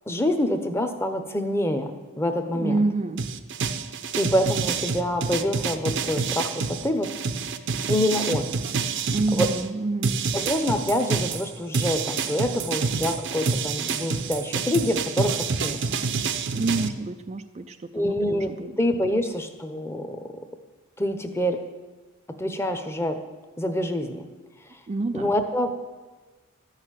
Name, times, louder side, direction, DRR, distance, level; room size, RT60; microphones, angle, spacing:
voice 1, 0.1-2.9 4.2-7.1 7.9-8.5 9.3-9.5 10.3-15.9 17.9-18.5 18.8-20.3 21.0-21.6 22.3-23.2 23.6-24.3 24.7-24.8 25.1-25.7, left 1 dB, 10° left, 7 dB, 0.8 m, -26 dB
voice 2, 2.5-3.2 9.1-10.2 16.5-18.7 24.9-25.3, right 2 dB, 30° right, 8 dB, 0.4 m, -28 dB
sound 1, 3.2-9.7 10.0-16.9, right 5 dB, 55° right, 0.7 m, -28 dB
13.5 x 6.5 x 9.0 m, 1.3 s
head